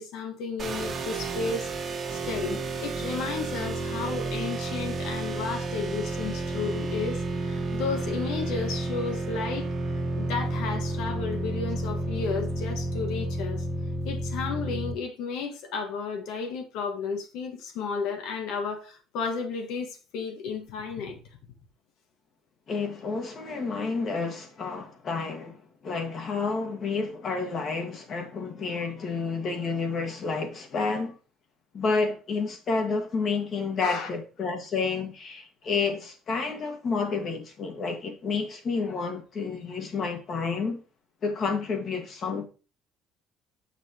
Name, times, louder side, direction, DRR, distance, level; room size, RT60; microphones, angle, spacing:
voice 1, 0.0-1.7 2.1-9.7 10.2-13.6 14.0-21.2 33.8-34.1, left 5 dB, 80° left, 1.5 m, -33 dB
sound 1, 0.6-14.9, right 2 dB, 30° right, 1.3 m, -31 dB
voice 2, 22.7-31.2 31.7-40.8 41.2-42.5, left 4 dB, 45° left, 1.6 m, -30 dB
7.6 x 6.0 x 2.9 m
cardioid pair, 130°, 0 cm